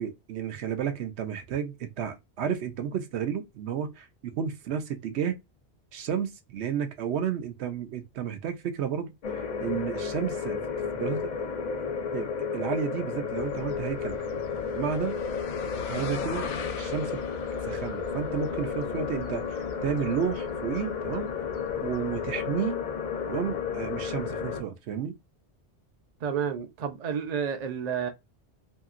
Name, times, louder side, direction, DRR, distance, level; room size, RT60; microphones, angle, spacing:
voice 1, 0.0-5.4 5.9-10.6 10.9-11.3 12.1-14.2 14.7-15.2 15.9-16.5 16.8-17.2 17.6-21.3 21.8-22.8 23.2-25.1, right 8 dB, 75° right, 0.9 m, -32 dB
sound 1, 9.2-24.6, left 6 dB, 50° left, 0.6 m, -32 dB
sound 2, 13.3-22.3, left 5 dB, 75° left, 0.9 m, -42 dB
voice 2, 26.2-28.1, right 7 dB, 50° right, 0.5 m, -30 dB
2.8 x 2.7 x 2.4 m
omnidirectional pair, 1.2 m